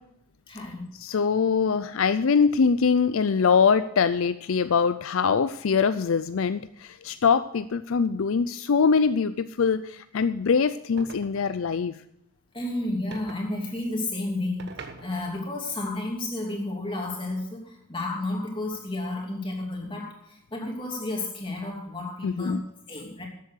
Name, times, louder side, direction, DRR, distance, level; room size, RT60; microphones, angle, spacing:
voice 1, 0.5-0.8 12.5-14.7 15.0-22.6 22.9-23.3, left 2 dB, 25° left, 0 dB, 2.8 m, -31 dB
voice 2, 1.0-11.9 22.2-22.6, left 5 dB, 70° left, 12 dB, 0.5 m, -23 dB
sound 1, 11.0-11.7 13.1-13.5 14.6-15.5, right 3 dB, 50° right, 1.3 m, -43 dB
13.0 x 8.3 x 6.5 m, 0.78 s
head